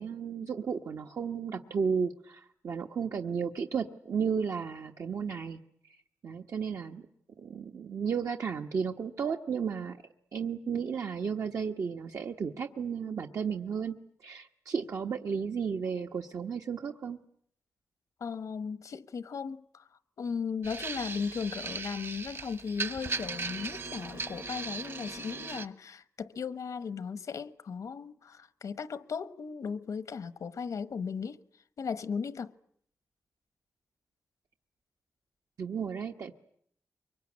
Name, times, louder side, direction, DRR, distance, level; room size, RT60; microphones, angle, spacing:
voice 1, 0.0-5.6 5.9-6.0 6.2-7.0 7.4-10.0 10.3-13.9 14.2-17.2 35.6-36.3, right 6 dB, 75° right, 1.2 m, -33 dB
voice 2, 18.2-19.9 20.2-31.4 31.8-32.5, left 6 dB, 85° left, 1.1 m, -36 dB
sound 1, 20.6-25.7, right 4 dB, 50° right, 1.2 m, -38 dB
24.0 x 23.0 x 9.7 m
wide cardioid pair, 110°, 5 cm